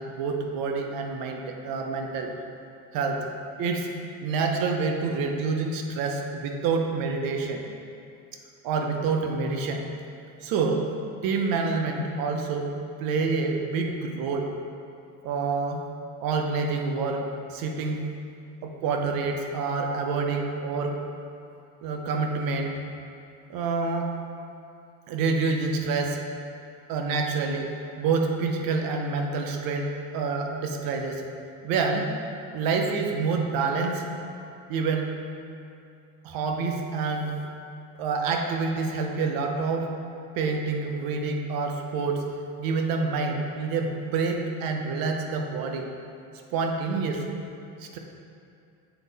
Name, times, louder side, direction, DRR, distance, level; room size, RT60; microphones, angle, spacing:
voice 1, 0.0-2.3 2.9-3.2 3.6-3.9 4.2-7.6 8.6-9.8 10.4-10.9 11.2-12.7 13.0-14.5 15.2-15.8 16.2-18.1 18.6-21.0 21.8-22.7 23.5-24.1 25.1-26.2 26.9-27.7 28.0-31.3 31.6-32.1 32.5-34.2 34.7-35.1 36.2-37.4 38.0-39.9 40.4-42.2 42.6-45.9 46.5-47.3 47.8-48.0, right 4 dB, 85° right, 3 dB, 0.8 m, -27 dB
8.0 x 3.7 x 4.1 m, 2.5 s
cardioid pair, 110°, 34 cm